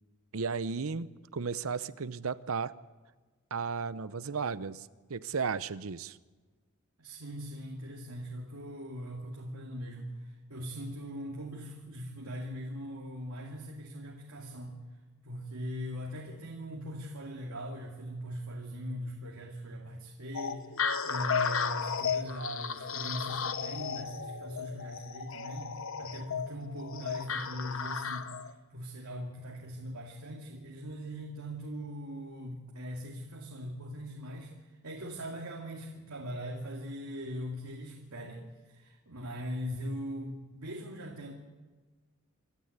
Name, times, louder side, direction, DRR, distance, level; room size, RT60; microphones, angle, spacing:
voice 1, 0.3-2.8 3.5-6.2, right 5 dB, 70° right, 16 dB, 0.7 m, -34 dB
voice 2, 7.0-14.8 15.2-41.3, equal, 90° right, 0 dB, 2.4 m, -41 dB
sound 1, 20.3-28.5, left 6 dB, 65° left, 1.0 m, -34 dB
27.0 x 13.0 x 8.0 m, 1.3 s
head